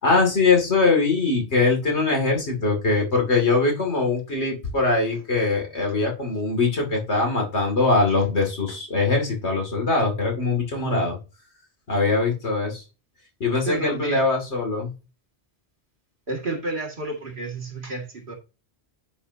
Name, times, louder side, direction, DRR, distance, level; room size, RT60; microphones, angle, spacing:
voice 1, 0.0-11.2 11.9-12.8 13.4-14.9, left 3 dB, 75° left, 2.6 m, -22 dB
voice 2, 10.7-11.1 13.6-14.2 16.3-18.3, right 3 dB, 50° right, 2.1 m, -31 dB
10.0 x 5.3 x 2.7 m
omnidirectional pair, 1.2 m